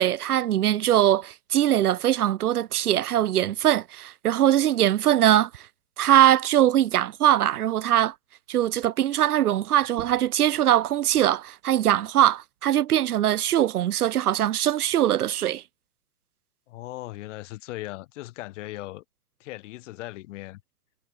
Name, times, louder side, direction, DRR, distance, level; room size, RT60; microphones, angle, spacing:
voice 1, 0.0-5.7 6.0-8.1 8.5-15.6, right 12 dB, 75° right, 1.2 m, -22 dB
sound 1, 9.8-15.0, right 19 dB, 50° right, 4.3 m, -52 dB
voice 2, 16.7-19.0 19.4-20.6, left 18 dB, 50° left, 7.8 m, -38 dB
hypercardioid pair, 135°, 46 cm